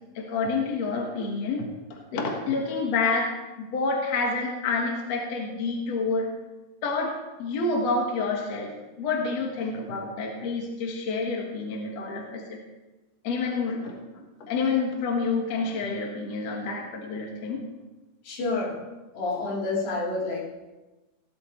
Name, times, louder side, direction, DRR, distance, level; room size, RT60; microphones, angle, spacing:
voice 1, 0.2-6.3 6.8-7.1 7.4-8.7 9.0-12.6 13.2-17.6, left 4 dB, 55° left, 0 dB, 2.5 m, -28 dB
voice 2, 18.2-18.8 19.1-20.5, left 3 dB, 85° left, -5 dB, 5.3 m, -28 dB
17.5 x 12.5 x 3.2 m, 1.1 s
omnidirectional pair, 3.9 m